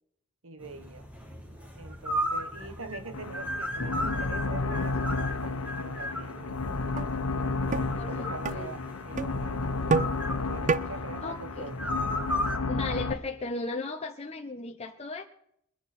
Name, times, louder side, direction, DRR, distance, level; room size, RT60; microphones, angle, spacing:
voice 1, 0.4-1.1 1.8-6.6 7.3-9.8 10.4-11.8, right 3 dB, 70° right, 11 dB, 1.3 m, -44 dB
sound 1, 0.6-12.6, equal, 5° right, 2.4 m, -36 dB
sound 2, 3.1-13.1, left 3 dB, 80° left, 1.1 m, -32 dB
sound 3, 6.4-6.5 7.0-7.1 7.7-7.8 8.4-8.6 9.2-9.3 9.9-10.1 10.7-10.8, right 4 dB, 35° right, 0.5 m, -26 dB
voice 2, 8.0-9.0 11.2-11.9 12.7-15.2, left 3 dB, 30° left, 2 dB, 0.9 m, -36 dB
22.5 x 10.5 x 4.3 m, 0.72 s
head